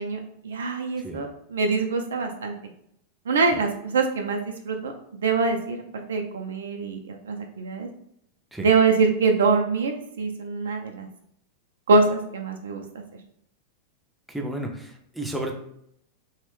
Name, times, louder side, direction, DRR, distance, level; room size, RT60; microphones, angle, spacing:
voice 1, 0.0-2.5 3.3-7.9 8.6-11.1 11.9-12.8, right 4 dB, 65° right, 4 dB, 0.3 m, -24 dB
voice 2, 14.3-15.6, right 1 dB, 5° right, 1 dB, 0.5 m, -32 dB
2.9 x 2.0 x 3.0 m, 0.71 s
figure-of-eight pair, 90°, 0 cm